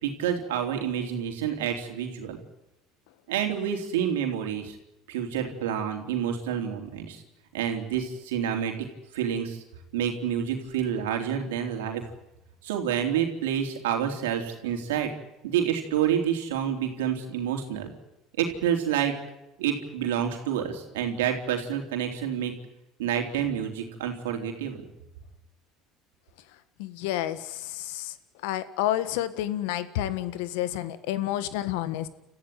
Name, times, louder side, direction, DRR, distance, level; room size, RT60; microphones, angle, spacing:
voice 1, 0.0-2.4 3.3-4.8 5.1-7.2 7.5-8.7 9.1-9.6 9.9-12.0 12.6-15.1 15.4-17.9 18.4-19.1 19.6-22.5 23.0-24.8, right 9 dB, 90° right, 4 dB, 3.7 m, -28 dB
voice 2, 26.8-28.1 28.4-32.1, left 13 dB, 80° left, 14 dB, 1.5 m, -30 dB
30.0 x 14.5 x 9.3 m, 0.94 s
supercardioid pair, 85°, 0 cm